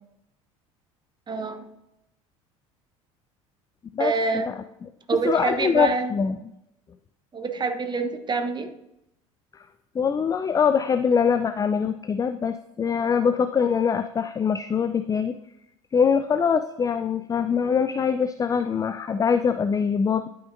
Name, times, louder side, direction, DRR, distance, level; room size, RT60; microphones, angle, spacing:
voice 1, 1.3-1.7 4.0-4.5 5.1-6.1 7.3-8.7, right 4 dB, 25° right, 8 dB, 1.0 m, -26 dB
voice 2, 5.2-6.3 9.9-15.3 15.9-20.3, left 6 dB, 20° left, 10 dB, 0.4 m, -23 dB
12.0 x 5.8 x 2.6 m, 0.85 s
hypercardioid pair, 70°, 17 cm